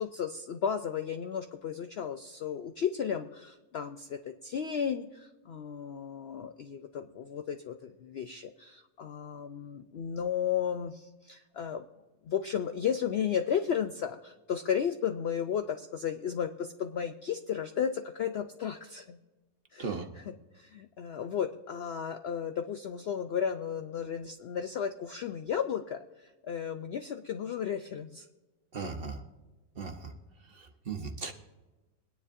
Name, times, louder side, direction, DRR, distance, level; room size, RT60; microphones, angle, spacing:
voice 1, 0.0-11.9 12.2-19.2 19.7-28.3, left 8 dB, 65° left, 8 dB, 0.6 m, -34 dB
voice 2, 28.7-29.2 29.7-30.1 30.5-31.3, right 4 dB, 45° right, 4 dB, 1.0 m, -37 dB
23.0 x 9.9 x 2.6 m, 1.2 s
omnidirectional pair, 1.6 m